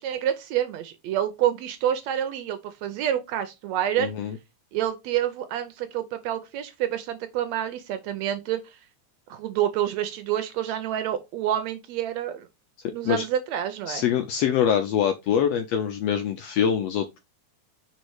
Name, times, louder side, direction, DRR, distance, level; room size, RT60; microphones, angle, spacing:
voice 1, 0.0-4.1 4.7-8.8 9.3-12.5 12.9-14.0, right 11 dB, 75° right, 1.7 m, -28 dB
voice 2, 4.0-4.4 13.0-13.2 13.9-17.2, left 8 dB, 80° left, 1.5 m, -24 dB
4.9 x 4.2 x 4.7 m
omnidirectional pair, 3.5 m